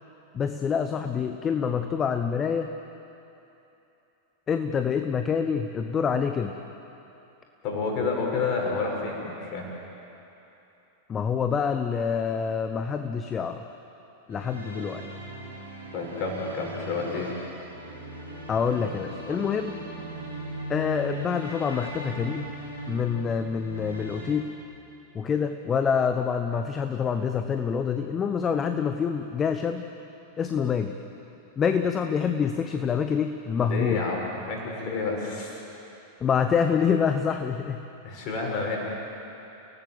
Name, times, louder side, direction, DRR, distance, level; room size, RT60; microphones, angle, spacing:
voice 1, 0.3-2.7 4.5-6.6 11.1-13.6 14.3-15.1 18.5-19.8 20.7-22.5 22.9-24.5 25.1-29.9 30.4-31.0 31.6-34.0 36.2-37.8, left 6 dB, 25° left, 7 dB, 1.1 m, -26 dB
voice 2, 7.6-9.7 15.9-17.3 33.6-35.6 38.0-38.8, left 4 dB, 40° left, -1 dB, 6.7 m, -29 dB
sound 1, 14.3-24.4, right 1 dB, 85° right, 4.6 m, -39 dB
30.0 x 18.5 x 7.8 m, 2.9 s
figure-of-eight pair, 90°, 0 cm